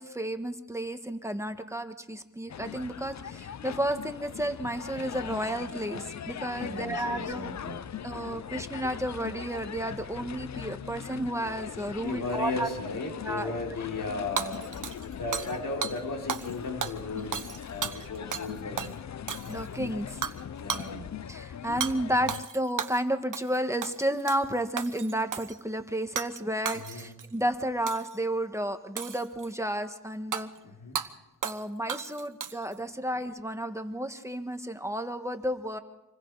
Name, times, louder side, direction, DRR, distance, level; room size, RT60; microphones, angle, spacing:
voice 1, 0.0-7.4 8.0-12.7 13.2-13.5 19.5-20.2 21.3-30.5 31.4-35.8, right 1 dB, 10° right, 7 dB, 1.6 m, -32 dB
sound 1, 2.5-22.5, left 8 dB, 60° left, 0.6 m, -40 dB
voice 2, 6.6-7.8 12.0-17.4 17.7-18.9 20.6-21.1 26.7-27.1 30.6-31.0, left 3 dB, 85° left, 1 dB, 4.1 m, -36 dB
Hammer / Shatter, 14.4-15.6 15.8-16.0 16.3-16.5 16.8-18.5 18.8-18.9 19.3-19.7 20.2-20.4 20.7-20.9 21.8-21.9 22.3-23.0 23.3-23.6 23.8-24.4 24.8-25.6 26.2-26.4 26.7-27.3 27.9-28.2 29.0-29.5 30.3-30.4 31.0-31.1 31.4-31.6 31.9-32.7, right 7 dB, 80° right, 1.1 m, -34 dB
26.5 x 21.5 x 4.8 m, 0.93 s
cardioid pair, 70°, 31 cm